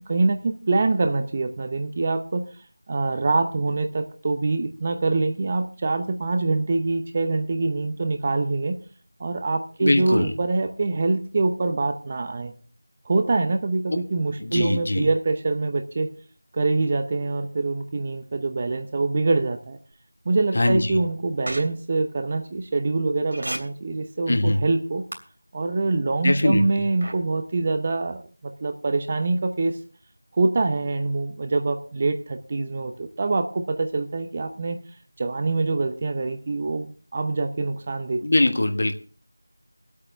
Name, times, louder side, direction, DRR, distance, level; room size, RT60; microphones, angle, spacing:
voice 1, 0.1-2.4 2.9-8.8 9.2-12.5 13.1-16.1 16.5-19.8 20.2-25.0 25.5-29.8 30.3-34.8 35.2-38.2, right 3 dB, 25° right, 7 dB, 0.8 m, -25 dB
voice 2, 9.8-10.4 13.9-14.0 14.4-15.1 20.5-21.0 24.3-24.6 26.2-26.7 38.2-39.0, left 1 dB, 45° left, 7 dB, 1.5 m, -22 dB
sound 1, 21.5-21.6 23.3-23.6 25.1-25.2 27.0-27.1, right 1 dB, 55° right, 2.9 m, -30 dB
23.0 x 8.4 x 3.3 m, 0.39 s
figure-of-eight pair, 175°, 0 cm